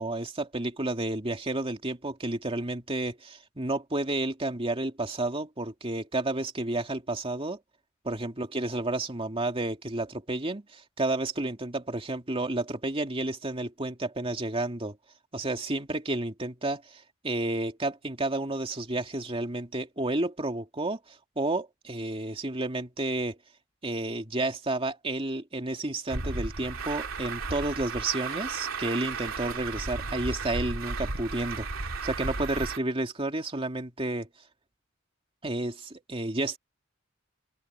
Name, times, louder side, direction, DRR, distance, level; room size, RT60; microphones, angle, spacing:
voice 1, 0.0-7.6 8.0-15.0 15.3-23.4 23.8-31.7 32.0-34.3 35.4-36.6, right 2 dB, 30° right, 2.4 m, -31 dB
Truck, 26.1-32.8, right 3 dB, 85° right, 2.7 m, -34 dB
open air
head